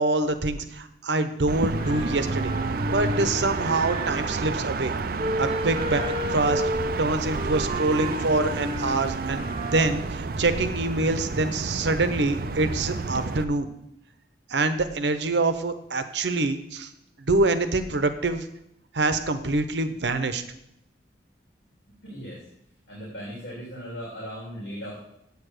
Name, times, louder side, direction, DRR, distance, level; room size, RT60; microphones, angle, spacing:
voice 1, 0.0-2.5 2.9-4.9 5.4-6.0 6.3-6.6 7.0-13.7 14.5-16.9 17.2-18.5 18.9-20.4, right 2 dB, 80° right, 10 dB, 0.9 m, -25 dB
Car Pass City ambience night, 1.5-13.4, right 3 dB, 55° right, 0.5 m, -30 dB
Wind instrument woodwind instrument, 1.7-4.6 5.2-10.0, equal, 35° right, 1.0 m, -32 dB
voice 2, 22.0-22.4 22.9-25.0, equal, 85° left, -5 dB, 3.3 m, -37 dB
8.3 x 7.0 x 6.6 m, 0.80 s
head